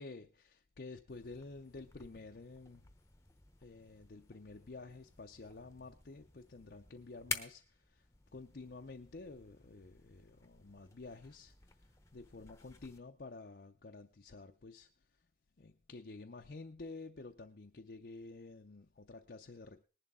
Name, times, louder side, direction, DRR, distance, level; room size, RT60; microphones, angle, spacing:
voice 1, 0.0-2.9 3.6-15.3 15.6-19.8, left 3 dB, 60° left, 0.6 m, -51 dB
sound 1, 1.1-13.0, left 4 dB, 15° left, 0.8 m, -51 dB
19.0 x 11.0 x 3.7 m
head